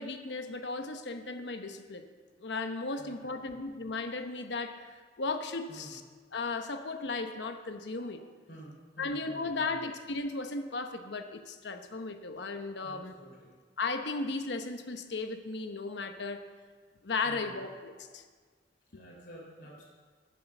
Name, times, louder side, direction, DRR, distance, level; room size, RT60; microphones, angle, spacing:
voice 1, 0.0-2.1 2.4-6.0 6.3-8.3 9.0-13.1 13.8-16.5 17.0-18.2, left 3 dB, 80° left, 7 dB, 0.9 m, -36 dB
voice 2, 3.0-3.6 5.7-6.0 8.5-9.8 12.8-13.5 17.2-17.6 18.9-19.8, right 1 dB, 65° left, -5 dB, 3.3 m, -50 dB
9.9 x 7.4 x 8.1 m, 1.5 s
head